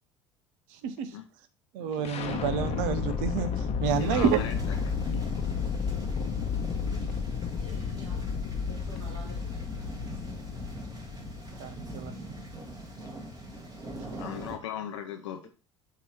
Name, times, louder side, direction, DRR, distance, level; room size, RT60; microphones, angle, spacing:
voice 1, 0.7-1.1 1.7-4.4 11.6-12.1, right 8 dB, 60° right, 0.7 m, -29 dB
sound 1, 2.0-13.9, left 6 dB, 40° left, 0.9 m, -33 dB
sound 2, 3.8-14.6, right 2 dB, 25° right, 1.9 m, -43 dB
voice 2, 3.9-4.6 5.0-5.2 14.2-15.5, left 9 dB, 70° left, 0.7 m, -37 dB
voice 3, 7.5-8.2 8.7-9.6 15.4-15.5, right 2 dB, 75° right, 1.6 m, -48 dB
6.9 x 3.0 x 4.5 m
figure-of-eight pair, 60°, 15 cm